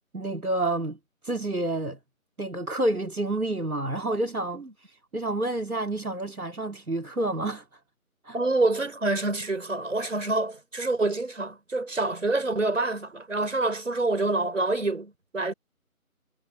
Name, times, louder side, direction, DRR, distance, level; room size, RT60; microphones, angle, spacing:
voice 1, 0.1-1.0 1.2-2.0 2.4-4.6 5.1-7.6 8.2-8.4, right 2 dB, 80° right, 2.4 m, -29 dB
voice 2, 8.3-15.5, right 2 dB, 60° right, 5.5 m, -27 dB
figure-of-eight pair, 160°, 43 cm